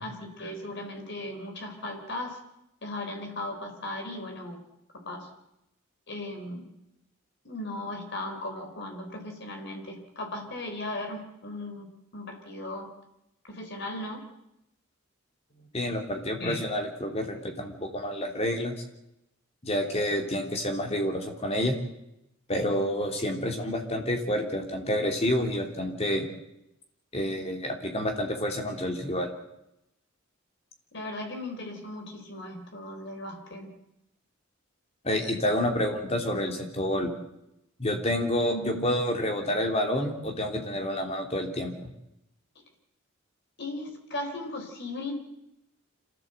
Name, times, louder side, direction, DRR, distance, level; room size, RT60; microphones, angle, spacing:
voice 1, 0.0-2.4 2.8-4.6 5.0-5.3 6.1-6.6 7.4-12.9 13.5-14.2 15.6-15.7 16.4-16.6 30.9-33.7 38.5-38.9 43.6-45.1, left 1 dB, 55° left, 3 dB, 4.1 m, -37 dB
voice 2, 15.7-18.7 19.6-21.7 22.5-26.3 27.1-29.3 35.0-37.1 37.8-41.9, left 1 dB, 30° left, 3 dB, 3.2 m, -29 dB
26.5 x 15.5 x 8.0 m, 0.86 s
head